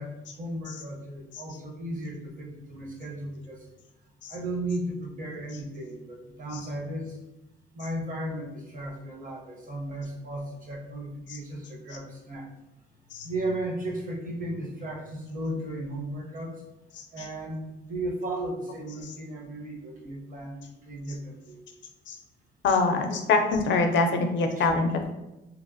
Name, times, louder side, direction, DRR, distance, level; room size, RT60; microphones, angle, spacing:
voice 1, 0.0-3.6 4.3-7.2 7.7-12.5 13.2-16.5 17.1-21.6 24.6-24.7, right 1 dB, 40° right, 0 dB, 0.7 m, -35 dB
voice 2, 22.6-25.1, left 3 dB, 70° left, 5 dB, 0.4 m, -24 dB
2.8 x 2.1 x 2.5 m, 0.98 s
cardioid pair, 90°, 20 cm